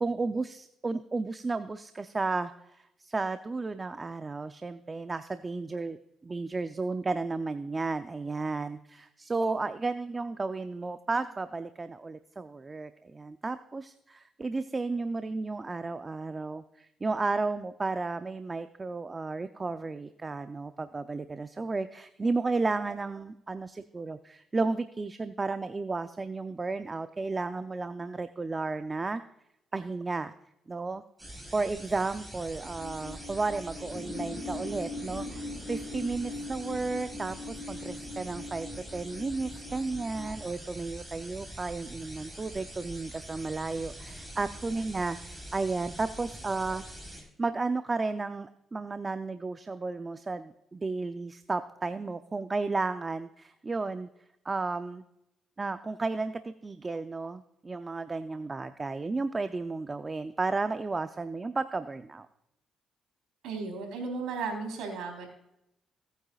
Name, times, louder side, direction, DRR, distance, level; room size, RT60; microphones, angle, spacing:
voice 1, 0.0-6.0 6.2-29.2 29.7-30.3 30.7-31.0 31.5-46.8 47.1-54.1 54.4-55.0 55.6-62.3, right 3 dB, 25° right, 10 dB, 0.5 m, -33 dB
sound 1, 31.2-47.2, equal, 10° right, 3.9 m, -44 dB
sound 2, 32.5-40.4, left 2 dB, 20° left, 1.8 m, -41 dB
voice 2, 63.4-65.3, right 4 dB, 85° right, 3 dB, 3.7 m, -35 dB
18.0 x 9.0 x 2.4 m, 0.83 s
cardioid pair, 90°, 0 cm